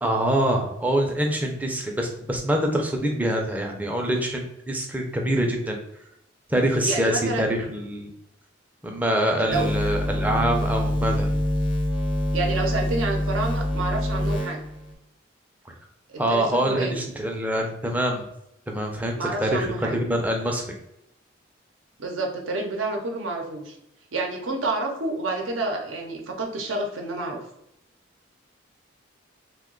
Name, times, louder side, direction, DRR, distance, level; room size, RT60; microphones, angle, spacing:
voice 1, 0.0-5.8 6.5-8.1 8.8-11.3 16.2-18.3 18.7-20.6, right 1 dB, 10° right, 1 dB, 0.4 m, -25 dB
voice 2, 6.9-7.5 9.4-9.7 12.3-14.6 16.3-17.0 19.1-20.0 22.0-23.8 24.1-27.4, right 2 dB, 85° right, 1 dB, 0.6 m, -29 dB
sound 1, 9.5-14.9, equal, 80° left, 1.0 m, -25 dB
2.9 x 2.2 x 3.7 m, 0.82 s
head